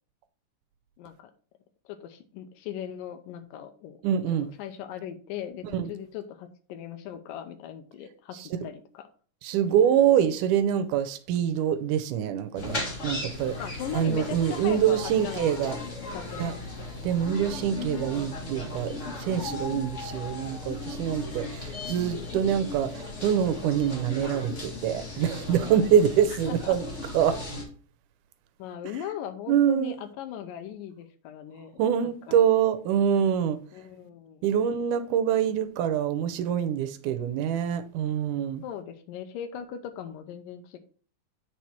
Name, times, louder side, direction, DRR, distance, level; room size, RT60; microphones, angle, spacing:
voice 1, 1.0-1.3 1.9-4.0 4.4-9.0 13.6-15.8 16.1-16.7 26.3-26.8 28.6-32.4 33.7-34.6 38.6-40.8, left 9 dB, 90° left, 2.4 m, -39 dB
voice 2, 4.0-4.5 5.7-5.9 9.4-13.6 13.9-15.8 16.4-16.5 17.0-26.9 27.1-27.4 29.5-29.9 31.8-33.6 34.4-38.6, right 9 dB, 75° right, 2.1 m, -25 dB
sound 1, 12.5-27.6, left 2 dB, 35° left, 1.2 m, -36 dB
8.4 x 4.7 x 4.3 m
omnidirectional pair, 3.8 m